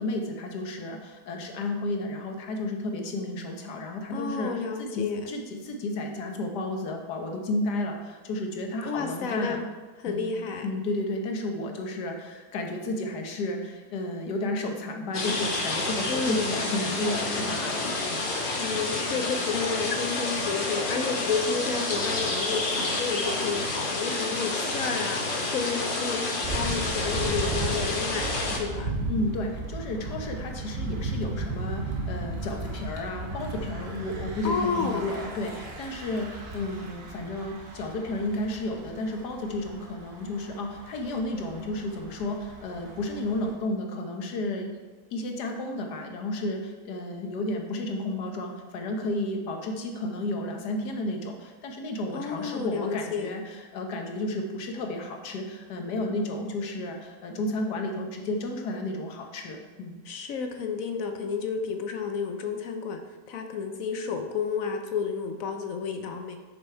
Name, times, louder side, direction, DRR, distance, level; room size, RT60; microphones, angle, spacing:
voice 1, 0.0-9.7 10.1-10.2 10.6-18.2 29.1-44.7 45.1-60.0, left 1 dB, 90° left, 3 dB, 1.6 m, -32 dB
voice 2, 4.1-5.2 8.8-9.6 10.0-10.7 16.1-16.5 18.6-28.9 34.4-35.1 52.1-53.3 60.1-63.0 63.3-66.4, left 5 dB, 65° left, 6 dB, 1.0 m, -31 dB
sound 1, 15.1-28.6, left 2 dB, 35° left, 1.1 m, -29 dB
Thunder / Bicycle, 26.4-43.6, right 2 dB, 45° right, 1.1 m, -35 dB
6.8 x 6.1 x 4.5 m, 1.3 s
omnidirectional pair, 1.7 m